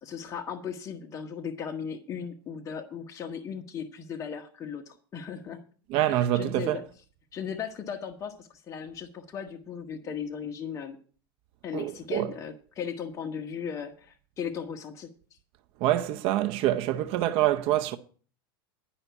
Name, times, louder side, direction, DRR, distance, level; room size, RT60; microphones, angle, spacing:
voice 1, 0.0-5.6 6.1-6.8 7.3-11.0 11.6-15.1, left 7 dB, 25° left, 1.1 m, -37 dB
voice 2, 5.9-6.8 11.7-12.3 15.8-18.0, right 13 dB, 50° right, 0.7 m, -26 dB
11.0 x 5.7 x 8.1 m
supercardioid pair, 135°, 12 cm